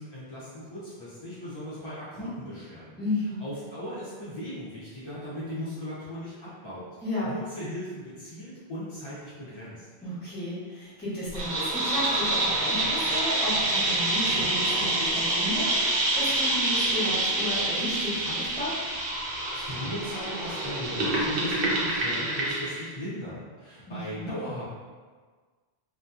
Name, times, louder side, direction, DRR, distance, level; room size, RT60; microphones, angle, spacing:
voice 1, 0.0-3.0 3.4-6.9 7.2-9.9 19.5-24.7, equal, 35° left, -10 dB, 0.5 m, -38 dB
voice 2, 3.0-3.4 7.0-7.3 10.0-18.8 23.9-24.3, left 1 dB, 10° left, -10 dB, 0.8 m, -33 dB
sound 1, 11.3-22.8, right 2 dB, 65° right, 0.7 m, -27 dB
2.7 x 2.1 x 2.3 m, 1.5 s
omnidirectional pair, 1.1 m